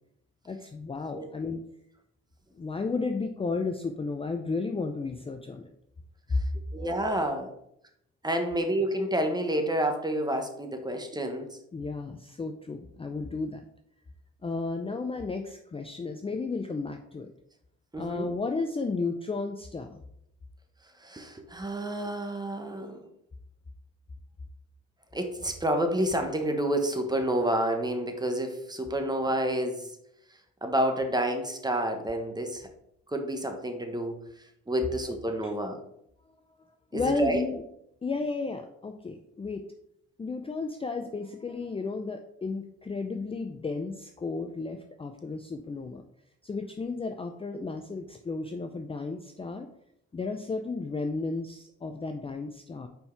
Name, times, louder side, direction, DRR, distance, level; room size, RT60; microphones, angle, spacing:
voice 1, 0.5-1.6 2.5-5.7 6.3-6.4 11.7-13.6 14.4-17.3 18.0-20.0 35.0-35.2 35.4-35.5 36.9-37.6 38.0-39.6 40.2-46.0 46.4-49.7 50.1-52.9, left 3 dB, 20° left, 5 dB, 0.5 m, -33 dB
voice 2, 6.7-7.5 8.2-11.5 17.9-18.3 21.0-23.0 25.1-29.9 30.6-32.7 33.1-34.2 34.7-35.8 36.9-37.4, right 1 dB, 15° right, 5 dB, 1.1 m, -29 dB
5.4 x 4.5 x 4.5 m, 0.75 s
cardioid pair, 90°, 30 cm